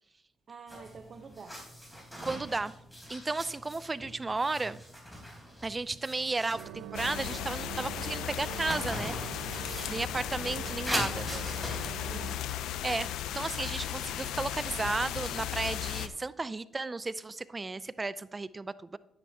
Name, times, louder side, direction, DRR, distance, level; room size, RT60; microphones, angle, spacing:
voice 1, 0.5-1.6 11.3-12.5, right 5 dB, 45° right, 0.8 m, -48 dB
sound 1, 0.7-11.9, equal, 10° left, 3.7 m, -42 dB
voice 2, 2.2-2.8 3.1-4.8 5.6-9.2 9.9-11.3 12.8-19.0, right 3 dB, 25° right, 0.4 m, -34 dB
sound 2, 6.5-12.4, right 11 dB, 90° right, 0.4 m, -44 dB
sound 3, 6.9-16.1, left 11 dB, 85° left, 0.5 m, -36 dB
11.0 x 9.8 x 2.8 m
cardioid pair, 90°, 0 cm